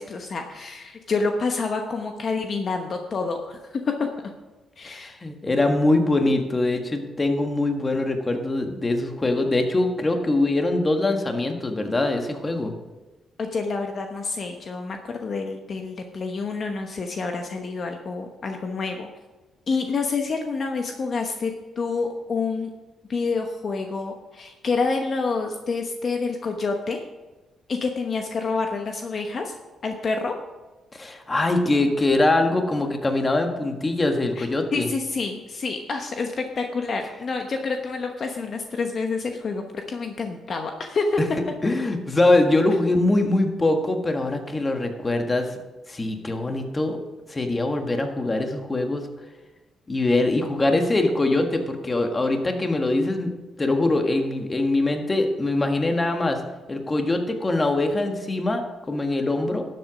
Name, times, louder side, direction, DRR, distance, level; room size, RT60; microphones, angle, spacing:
voice 1, 0.0-4.1 4.8-5.1 13.4-19.1 19.7-22.7 23.1-27.0 27.7-29.5 29.8-30.3 34.4-41.2 42.7-42.9, left 4 dB, 50° left, 4 dB, 1.0 m, -28 dB
voice 2, 4.8-12.7 30.9-34.9 41.6-45.5 45.9-47.0 47.3-49.1 49.9-53.3 53.6-56.4 56.7-59.6, left 2 dB, 25° left, 4 dB, 1.6 m, -23 dB
12.0 x 7.8 x 5.1 m, 1.2 s
cardioid pair, 90°, 0 cm